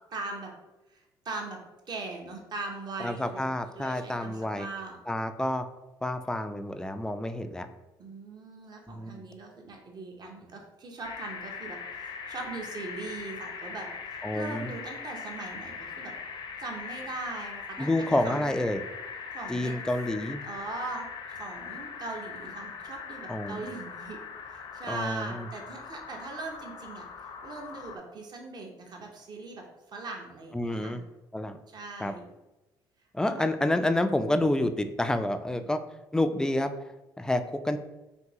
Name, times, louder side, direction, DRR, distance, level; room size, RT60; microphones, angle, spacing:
voice 1, 0.1-0.5 0.9-1.6 1.9-3.5 3.8-5.0 8.0-16.1 16.6-18.5 19.3-19.7 20.4-24.2 24.5-31.0 31.7-32.3 33.2-33.5 35.5-35.7, right 3 dB, 45° right, 1 dB, 0.8 m, -40 dB
voice 2, 3.0-4.7 5.1-5.6 6.0-7.7 8.9-9.3 14.2-14.7 17.8-18.8 19.5-20.4 23.3-23.6 24.9-25.5 30.5-31.0 31.3-31.6 32.0-32.1 33.1-35.8 36.1-36.7 37.2-37.8, left 1 dB, 5° left, 8 dB, 0.3 m, -29 dB
sound 1, 11.0-28.0, left 6 dB, 55° left, 0.6 m, -41 dB
3.5 x 2.6 x 2.9 m, 1.0 s
supercardioid pair, 65°, 10 cm